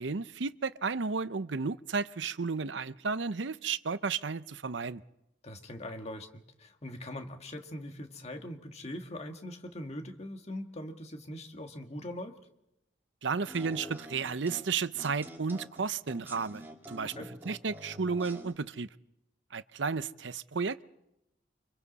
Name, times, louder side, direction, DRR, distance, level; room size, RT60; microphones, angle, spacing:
voice 1, 0.0-5.0 13.2-17.1 17.4-18.9 19.5-20.8, right 5 dB, 70° right, 0.7 m, -33 dB
voice 2, 5.4-12.4 17.2-17.3, left 1 dB, 35° left, 1.9 m, -42 dB
sound 1, 13.5-18.5, right 1 dB, 10° right, 2.6 m, -47 dB
29.5 x 25.5 x 4.2 m
head